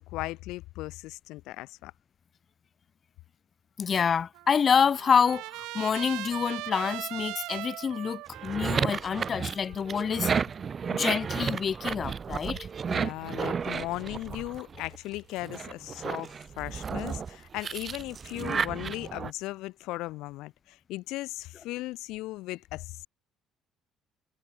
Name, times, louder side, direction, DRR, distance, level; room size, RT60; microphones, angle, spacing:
voice 1, 0.0-1.9 12.9-23.1, left 19 dB, 80° left, 2.0 m, -37 dB
voice 2, 3.8-10.3 10.9-12.6, left 7 dB, 40° left, 0.3 m, -27 dB
Trumpet, 4.3-10.5, right 20 dB, 80° right, 1.7 m, -40 dB
sound 1, 8.3-15.0 15.4-19.3, right 6 dB, 35° right, 1.0 m, -32 dB
cardioid pair, 100°, 0 cm